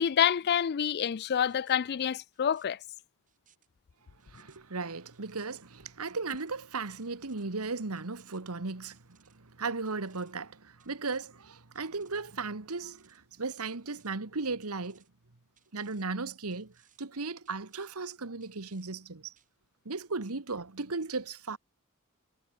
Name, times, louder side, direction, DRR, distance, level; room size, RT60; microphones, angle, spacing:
voice 1, 0.0-2.8, left 8 dB, 50° left, 0.4 m, -27 dB
sound 1, 1.4-1.8 2.3-2.7 3.3-3.7 4.2-4.6 5.1-5.6 6.1-6.5 7.0-7.4 8.0-8.4 8.9-9.4 9.9-10.3 10.8-11.3 11.8-12.2 12.7-13.2 13.7-14.1 14.6-15.1 15.6-16.1 16.5-17.0 17.5-18.0 18.4-18.9 19.4-19.5, right 9 dB, 35° right, 7.2 m, -67 dB
voice 2, 4.3-9.0 9.3-15.0 15.7-19.3 19.8-21.6, right 3 dB, 85° right, 1.5 m, -36 dB
head